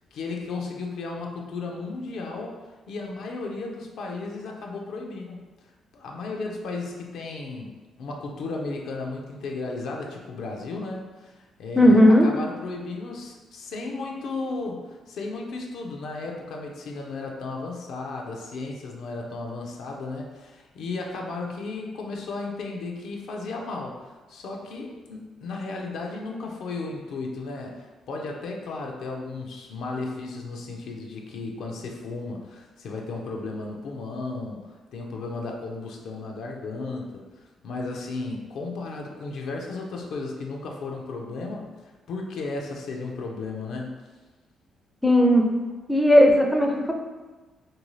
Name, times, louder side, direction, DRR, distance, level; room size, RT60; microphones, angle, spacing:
voice 1, 0.1-5.4 5.9-7.7 8.0-37.2 37.6-44.0, left 3 dB, 75° left, 0 dB, 0.4 m, -34 dB
voice 2, 11.8-12.3 45.0-45.4 45.9-46.9, equal, 5° left, 1 dB, 0.4 m, -16 dB
2.6 x 2.2 x 3.1 m, 1.2 s
cardioid pair, 90°, 0 cm